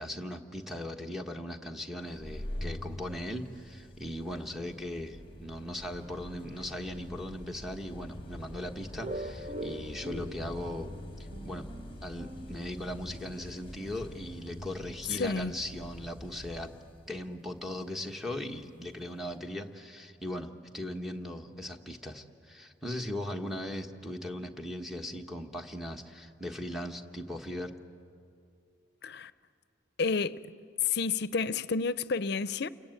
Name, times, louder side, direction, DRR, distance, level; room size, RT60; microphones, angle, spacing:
voice 1, 0.0-10.9 11.4-11.7 12.0-16.7 17.1-27.7, left 1 dB, ahead, 1.3 m, -38 dB
sound 1, 2.0-19.4, left 1 dB, 30° left, 1.3 m, -46 dB
sound 2, 5.8-16.7, left 1 dB, 60° right, 7.6 m, -50 dB
sound 3, 9.0-13.6, right 1 dB, 35° right, 0.9 m, -43 dB
voice 2, 15.2-15.5 29.0-29.3 30.0-30.4 30.8-32.7, left 4 dB, 60° left, 0.6 m, -30 dB
29.0 x 22.5 x 9.1 m
head